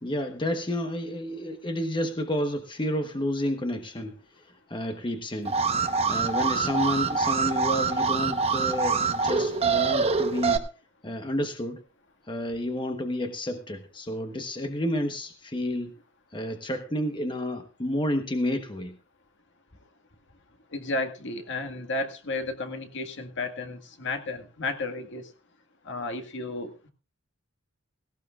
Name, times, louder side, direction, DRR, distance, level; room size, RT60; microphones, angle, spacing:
voice 1, 0.0-4.2 4.7-5.6 6.1-10.6 11.0-11.8 12.3-15.9 16.3-19.0, left 1 dB, 25° left, 6 dB, 1.1 m, -30 dB
Alarm, 5.4-10.6, right 4 dB, 30° right, 1.1 m, -25 dB
voice 2, 20.7-25.2 25.9-26.7, left 2 dB, 60° left, 6 dB, 1.8 m, -33 dB
17.5 x 17.0 x 2.5 m, 0.33 s
head